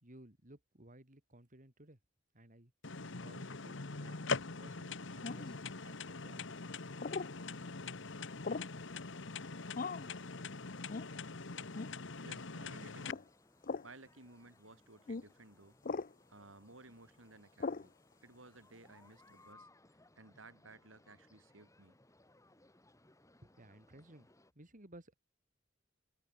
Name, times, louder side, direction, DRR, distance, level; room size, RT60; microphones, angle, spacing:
voice 1, 0.0-2.0 2.3-2.7 3.2-4.2 4.6-6.9 23.4-24.3 24.6-25.1, right 1 dB, 40° right, 3.7 m, -58 dB
sound 1, 2.8-13.1, left 4 dB, 65° left, 1.5 m, -43 dB
sound 2, 5.2-5.6 7.0-7.3 8.4-8.8 9.7-10.1 10.9-11.1 11.7-12.0 13.0-13.2 13.6-13.9 15.1-15.2 15.8-16.1 17.6-17.9, left 4 dB, 45° left, 0.7 m, -39 dB
voice 2, 12.2-13.2 13.8-15.8 16.3-17.9 18.2-19.7 20.2-21.9, right 2 dB, 80° right, 6.2 m, -57 dB
sound 3, 12.4-24.5, left 2 dB, 15° left, 3.4 m, -66 dB
open air
head